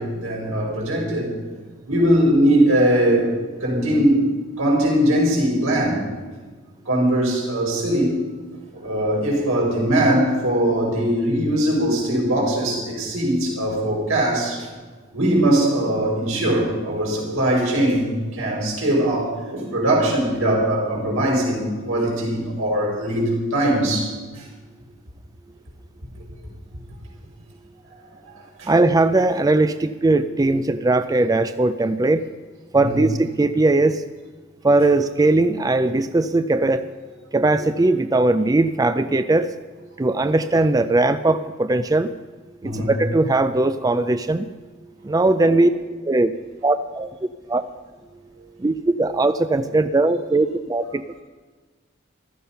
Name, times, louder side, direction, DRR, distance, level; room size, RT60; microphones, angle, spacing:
voice 1, 0.0-1.4 1.9-4.2 4.6-6.1 6.9-8.2 8.7-14.7 15.1-24.5 28.3-28.7 32.8-33.0 42.6-42.9 45.4-45.6, right 1 dB, 85° right, -2 dB, 5.2 m, -21 dB
voice 2, 28.7-32.3 32.7-34.0 34.6-37.0 37.3-39.5 40.0-42.1 42.6-44.5 45.0-45.7 46.0-47.6 48.6-51.2, right 2 dB, 20° right, 11 dB, 0.4 m, -19 dB
15.0 x 13.0 x 5.6 m, 1.4 s
head